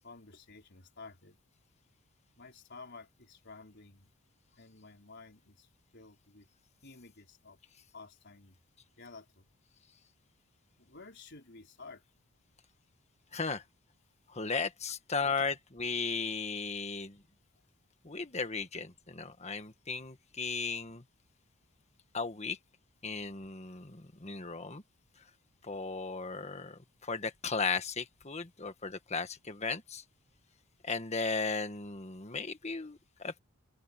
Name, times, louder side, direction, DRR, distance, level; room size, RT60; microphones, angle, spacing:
voice 1, 0.0-1.4 2.4-4.1 4.5-6.5 6.8-7.6 7.9-8.6 9.0-9.5 10.8-12.0, left 3 dB, 50° left, 4.5 m, -52 dB
voice 2, 13.3-13.6 14.3-17.2 18.0-21.0 22.1-22.6 23.0-24.8 25.6-30.0 30.8-33.4, left 4 dB, 30° left, 1.5 m, -36 dB
open air
head